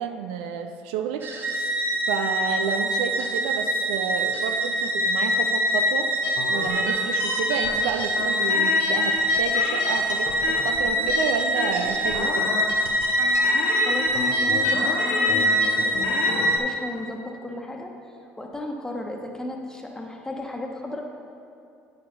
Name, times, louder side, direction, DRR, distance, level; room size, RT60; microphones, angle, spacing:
voice 1, 0.0-1.7 2.1-6.1 6.5-12.4, right 7 dB, 80° right, 7 dB, 0.5 m, -30 dB
sound 1, 1.2-16.6, equal, 40° right, 1.2 m, -24 dB
sound 2, 6.2-16.6, left 5 dB, 75° left, 0.8 m, -32 dB
voice 2, 13.8-17.9 18.4-21.0, left 1 dB, 10° left, 1 dB, 1.2 m, -34 dB
8.7 x 6.5 x 4.0 m, 2.5 s
hypercardioid pair, 70°, 5 cm